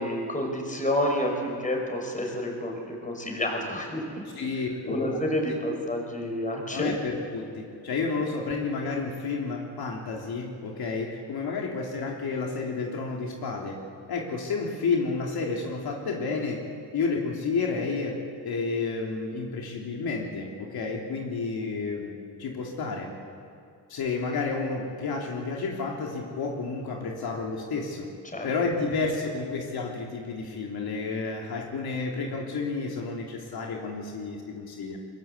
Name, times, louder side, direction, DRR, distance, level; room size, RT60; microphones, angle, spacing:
voice 1, 0.0-4.0 4.8-6.9 28.3-28.5, left 1 dB, 20° left, 2 dB, 5.6 m, -29 dB
voice 2, 4.3-5.2 6.7-13.8 14.1-16.6 16.9-22.1 22.4-23.1 23.9-28.1 28.4-35.0, left 4 dB, 70° left, 0 dB, 3.4 m, -31 dB
23.0 x 22.5 x 8.4 m, 2.5 s
cardioid pair, 115°, 38 cm